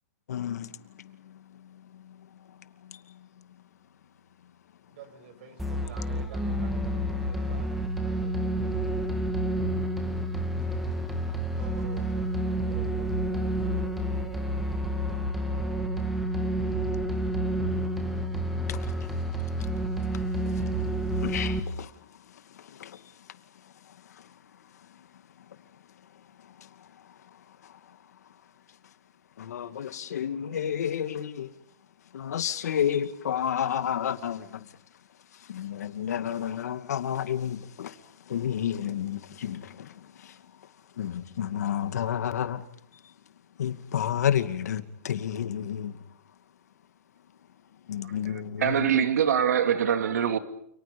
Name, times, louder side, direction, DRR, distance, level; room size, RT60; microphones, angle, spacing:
voice 1, 0.3-0.7 21.2-21.9 22.8-22.9 29.4-31.5 32.1-34.6 35.5-37.9 38.3-39.9 41.0-42.6 43.6-45.9 47.9-48.6, left 9 dB, 80° left, 2.4 m, -30 dB
voice 2, 4.9-8.7 11.3-14.2, right 7 dB, 45° right, 7.2 m, -50 dB
sound 1, 5.6-21.6, right 1 dB, ahead, 2.6 m, -29 dB
voice 3, 48.0-50.4, right 8 dB, 85° right, 2.6 m, -25 dB
29.5 x 29.5 x 5.4 m
hypercardioid pair, 165°, 9 cm